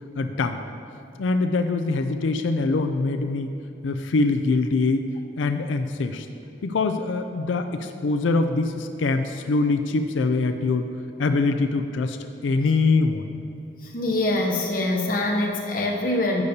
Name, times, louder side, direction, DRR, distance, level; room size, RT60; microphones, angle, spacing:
voice 1, 0.2-0.6 1.2-3.5 3.8-5.1 5.4-6.3 6.6-10.8 11.2-12.2 12.4-13.2, left 3 dB, 85° left, 8 dB, 0.4 m, -23 dB
voice 2, 13.8-16.4, left 1 dB, 45° left, 0 dB, 0.8 m, -24 dB
11.5 x 8.1 x 2.8 m, 2.8 s
head